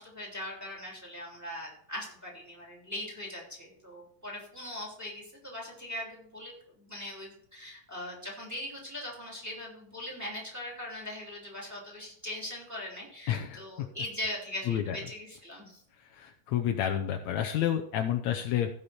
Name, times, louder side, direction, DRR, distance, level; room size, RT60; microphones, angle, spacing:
voice 1, 0.0-15.8, left 1 dB, 5° right, -2 dB, 2.9 m, -40 dB
voice 2, 13.3-13.6 14.7-15.0 16.1-18.7, left 10 dB, 85° left, 4 dB, 1.5 m, -29 dB
16.5 x 5.6 x 4.4 m, 0.66 s
omnidirectional pair, 4.2 m